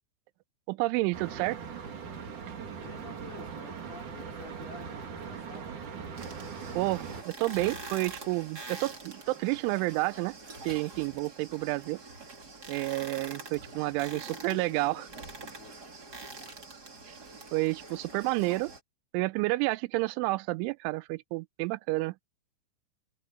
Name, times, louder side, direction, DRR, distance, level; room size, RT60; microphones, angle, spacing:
voice 1, 0.7-1.6 6.7-10.4 10.7-12.0 12.7-15.1 17.5-18.7 19.1-22.1, right 22 dB, 85° right, 3.0 m, -30 dB
sound 1, 1.1-7.2, right 6 dB, 50° right, 3.7 m, -40 dB
voice 2, 2.8-5.8 13.7-15.8 17.9-18.2, left 6 dB, 55° left, 6.1 m, -51 dB
sound 2, 6.2-18.8, right 3 dB, 25° right, 2.8 m, -45 dB
omnidirectional pair, 5.4 m